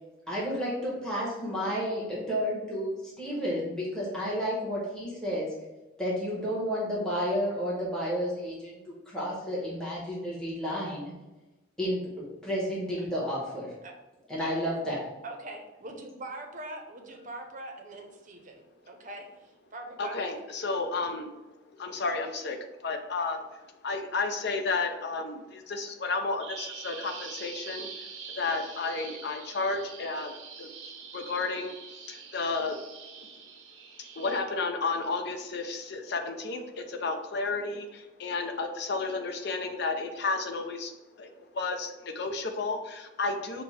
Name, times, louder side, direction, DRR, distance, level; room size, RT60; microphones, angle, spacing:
voice 1, 0.3-5.5 6.0-8.8 9.1-11.1 11.8-13.7 14.3-15.1, equal, 5° left, -6 dB, 1.0 m, -31 dB
voice 2, 15.2-20.4, right 2 dB, 40° right, 3 dB, 0.7 m, -42 dB
voice 3, 20.0-21.3 21.8-32.8 34.1-40.9 41.2-43.6, left 3 dB, 55° left, 5 dB, 0.5 m, -32 dB
Bird vocalization bird call bird song, 26.4-34.4, right 6 dB, 70° right, 0.7 m, -44 dB
5.2 x 2.2 x 4.1 m, 1.1 s
head